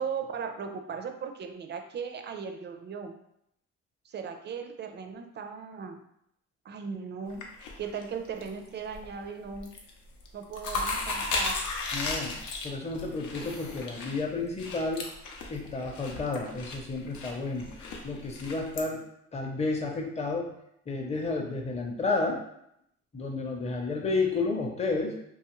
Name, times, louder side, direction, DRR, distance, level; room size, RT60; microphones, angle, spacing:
voice 1, 0.0-3.2 4.0-6.0 6.6-7.5 7.8-9.7 10.3-11.6, right 6 dB, 35° right, 6 dB, 0.4 m, -37 dB
sound 1, 7.3-8.5 8.8-9.2 9.5-9.9 10.2-18.8, left 3 dB, 80° left, 0.6 m, -35 dB
voice 2, 11.9-12.4 12.6-15.1 15.5-17.7 18.0-19.0 19.3-20.5 20.9-22.4 23.1-25.2, left 3 dB, 20° left, 0 dB, 0.6 m, -31 dB
2.7 x 2.3 x 3.0 m, 0.76 s
cardioid pair, 90°, 30 cm